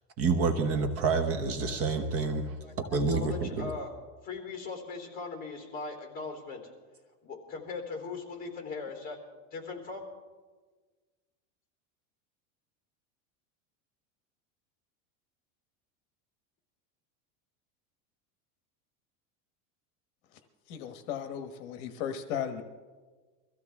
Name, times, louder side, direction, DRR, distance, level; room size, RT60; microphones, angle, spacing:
voice 1, 0.2-3.7, right 4 dB, 35° right, 6 dB, 1.1 m, -28 dB
voice 2, 2.6-3.9 4.2-6.6 7.2-9.2 9.5-10.0, left 4 dB, 20° left, 1 dB, 3.3 m, -39 dB
voice 3, 20.7-22.6, left 8 dB, 60° left, 7 dB, 1.2 m, -36 dB
23.0 x 15.0 x 3.6 m, 1.4 s
supercardioid pair, 155°, 40 cm